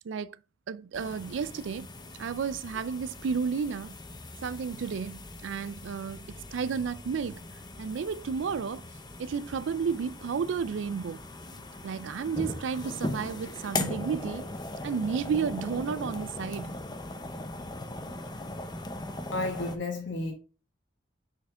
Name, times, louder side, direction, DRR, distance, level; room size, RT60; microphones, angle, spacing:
voice 1, 0.1-0.4 0.7-1.9 2.2-4.0 4.4-7.4 7.8-8.8 9.2-11.2 11.8-14.5 14.8-16.7, right 6 dB, 80° right, 0.4 m, -32 dB
sound 1, 0.9-19.8, left 2 dB, 20° left, 0.7 m, -39 dB
voice 2, 19.3-20.3, left 2 dB, 75° left, 1.4 m, -31 dB
6.5 x 5.7 x 3.7 m
head